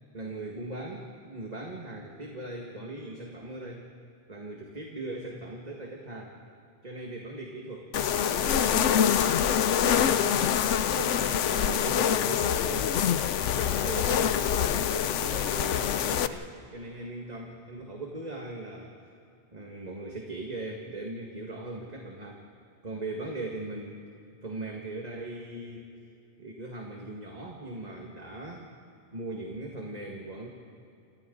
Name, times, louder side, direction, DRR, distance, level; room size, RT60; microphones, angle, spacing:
voice 1, 0.1-3.9 4.3-6.3 6.8-10.6 11.0-13.0 13.5-18.9 19.5-22.4 22.8-24.0 24.4-25.9 26.4-28.7 29.1-30.5, right 2 dB, 35° right, -1 dB, 1.9 m, -39 dB
sound 1, 7.9-16.3, left 9 dB, 85° left, 1.0 m, -25 dB
29.0 x 27.0 x 3.9 m, 2.6 s
omnidirectional pair, 1.2 m